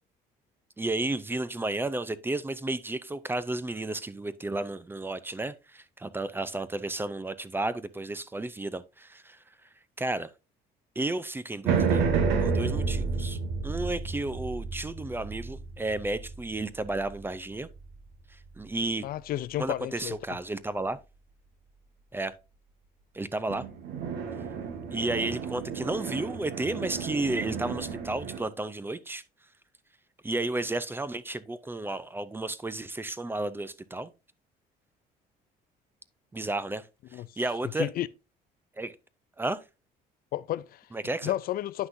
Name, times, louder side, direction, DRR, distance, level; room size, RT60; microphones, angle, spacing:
voice 1, 0.8-9.4 10.0-10.3 11.0-12.0 12.4-13.4 13.6-17.7 18.6-19.0 19.6-21.0 22.1-22.3 23.1-23.6 24.9-29.2 30.2-34.1 36.3-36.8 37.4-37.9 38.8-39.0 39.4-39.6 40.9-41.3, right 2 dB, 15° right, 0.5 m, -32 dB
sound 1, 11.6-18.2 23.5-28.4, right 5 dB, 90° right, 1.4 m, -31 dB
voice 2, 19.0-20.2 37.1-37.3 37.8-38.1 40.3-40.9 41.2-41.9, left 13 dB, 60° left, 0.4 m, -32 dB
9.8 x 5.8 x 2.6 m
cardioid pair, 110°, 17 cm